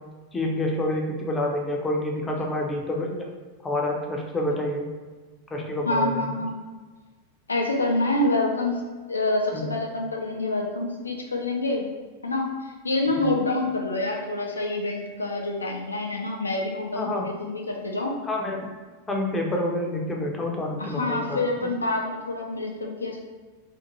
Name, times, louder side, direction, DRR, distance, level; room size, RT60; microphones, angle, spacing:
voice 1, 0.3-3.2 3.6-4.9 5.5-6.3 9.5-9.7 13.2-13.3 17.0-17.2 18.2-18.7 19.1-21.4, left 1 dB, 15° left, 0 dB, 0.5 m, -28 dB
voice 2, 5.9-6.6 7.5-8.8 9.1-11.9 12.2-12.5 12.8-18.2 20.8-23.2, left 2 dB, 80° left, 0 dB, 0.5 m, -27 dB
2.5 x 2.4 x 2.9 m, 1.4 s
figure-of-eight pair, 90°, 0 cm